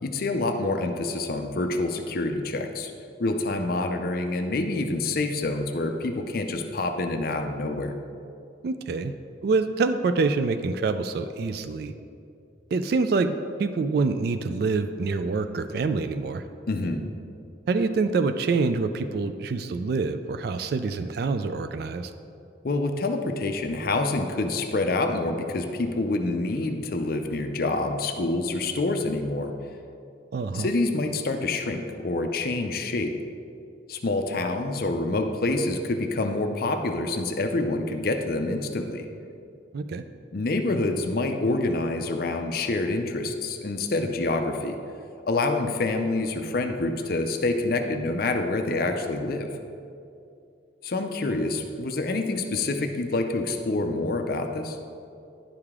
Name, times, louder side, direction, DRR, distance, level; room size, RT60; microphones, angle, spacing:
voice 1, 0.0-2.9 3.2-7.9 16.7-17.0 22.6-29.5 30.5-33.1 33.9-39.1 40.3-44.8 45.3-49.5 50.8-54.8, left 2 dB, 50° left, 5 dB, 0.5 m, -27 dB
voice 2, 8.6-9.1 9.4-11.9 12.7-16.4 17.7-22.1 30.3-30.7 39.7-40.0, right 4 dB, 55° right, 9 dB, 0.3 m, -26 dB
10.5 x 4.9 x 3.6 m, 2.5 s
head